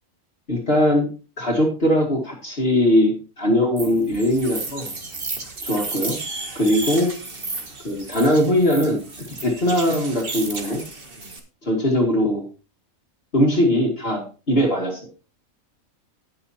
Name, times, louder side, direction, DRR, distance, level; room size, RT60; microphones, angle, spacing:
voice 1, 0.5-1.1 1.4-4.9 5.6-6.1 6.6-7.1 7.8-9.0 9.4-10.8 11.6-12.4 13.3-15.0, left 1 dB, 45° left, 0 dB, 2.3 m, -20 dB
sound 1, 3.8-11.4, right 3 dB, 40° right, 1.8 m, -33 dB
18.0 x 6.8 x 2.8 m, 0.34 s
omnidirectional pair, 1.5 m